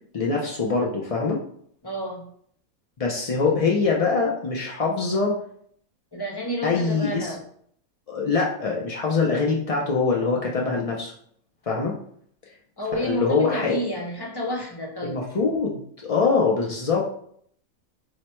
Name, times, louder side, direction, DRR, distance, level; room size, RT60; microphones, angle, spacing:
voice 1, 0.1-1.4 3.0-5.4 6.6-7.3 8.1-11.1 11.7-12.0 12.9-13.8 15.0-17.1, left 4 dB, 75° left, -2 dB, 0.3 m, -23 dB
voice 2, 1.8-2.3 6.1-7.4 12.8-15.3, equal, 25° left, 0 dB, 0.6 m, -30 dB
4.8 x 2.1 x 4.3 m, 0.64 s
omnidirectional pair, 1.5 m